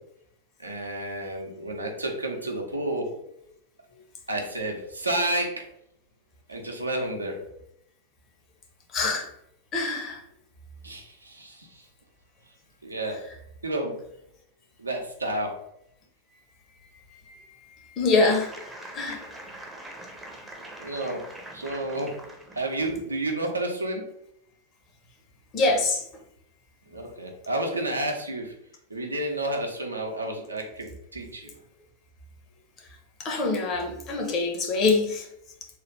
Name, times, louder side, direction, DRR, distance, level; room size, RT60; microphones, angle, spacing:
voice 1, 0.6-3.1 4.3-5.5 6.5-7.4 10.8-11.9 12.8-13.2 13.6-13.9 14.8-15.5 20.8-21.2 21.5-22.1 22.5-24.0 26.9-28.5 28.9-31.5, right 1 dB, 80° right, 1 dB, 0.6 m, -30 dB
voice 2, 8.9-9.3 9.7-10.2 16.9-17.5 18.0-18.5 18.9-19.3 25.5-26.0 33.2-35.3, left 3 dB, 30° left, 2 dB, 0.8 m, -25 dB
sound 1, 18.3-23.0, right 1 dB, 10° right, 0.6 m, -43 dB
3.2 x 2.4 x 3.2 m, 0.77 s
figure-of-eight pair, 90°, 0 cm